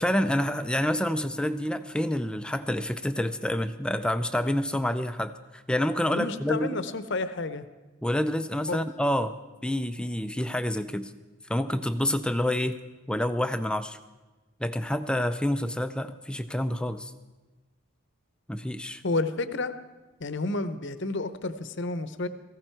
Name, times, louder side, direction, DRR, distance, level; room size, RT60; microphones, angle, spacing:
voice 1, 0.0-6.8 8.0-9.4 9.6-11.1 11.5-12.8 13.1-14.0 14.6-17.1 18.5-19.0, left 1 dB, 5° left, 10 dB, 0.4 m, -28 dB
voice 2, 6.1-7.7 8.7-8.8 19.0-19.7 20.2-22.3, left 2 dB, 55° left, 11 dB, 0.8 m, -30 dB
18.0 x 15.5 x 4.5 m, 1.2 s
head